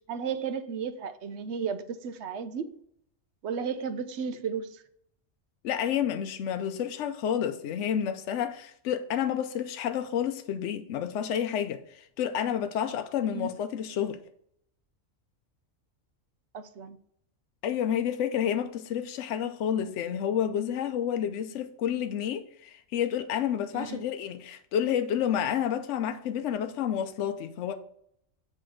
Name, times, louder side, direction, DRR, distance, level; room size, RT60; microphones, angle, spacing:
voice 1, 0.1-2.6 3.4-4.8 13.3-13.5 16.5-17.0 23.7-24.0, right 6 dB, 65° right, 0.9 m, -34 dB
voice 2, 5.6-14.2 17.6-27.7, left 9 dB, 70° left, 0.9 m, -30 dB
7.8 x 3.2 x 6.2 m
omnidirectional pair, 1.3 m